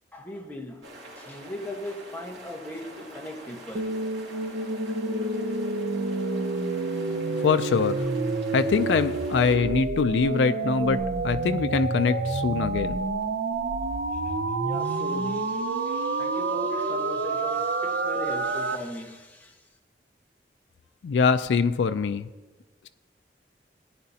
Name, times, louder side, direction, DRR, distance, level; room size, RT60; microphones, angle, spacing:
voice 1, 0.1-0.9 1.2-3.9 5.7-5.8 14.1-14.3 14.6-19.6, left 1 dB, 10° left, 0 dB, 1.2 m, -39 dB
sound 1, 0.8-9.6, right 1 dB, 90° right, 2.7 m, -45 dB
sound 2, 3.8-18.8, right 3 dB, 65° right, 0.6 m, -28 dB
voice 2, 7.4-8.0 8.5-13.0 21.0-22.3, left 5 dB, 90° left, 10 dB, 0.4 m, -23 dB
17.0 x 9.5 x 2.8 m, 1.2 s
head